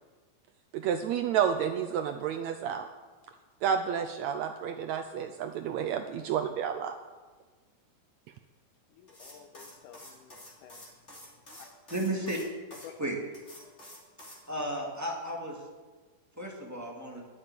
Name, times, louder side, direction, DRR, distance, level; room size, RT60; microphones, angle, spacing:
voice 1, 0.7-2.9 3.6-7.0, right 8 dB, 80° right, 6 dB, 1.7 m, -30 dB
voice 2, 8.9-10.9 11.6-11.7 12.8-12.9, left 10 dB, 80° left, 6 dB, 2.2 m, -52 dB
sound 1, 9.1-12.9 13.3-14.4, left 1 dB, 20° left, 2.9 m, -49 dB
voice 3, 11.9-12.4 13.0-13.2 14.5-15.7 16.4-17.2, right 1 dB, 5° right, -1 dB, 1.5 m, -33 dB
12.5 x 7.2 x 9.9 m, 1.3 s
omnidirectional pair, 3.9 m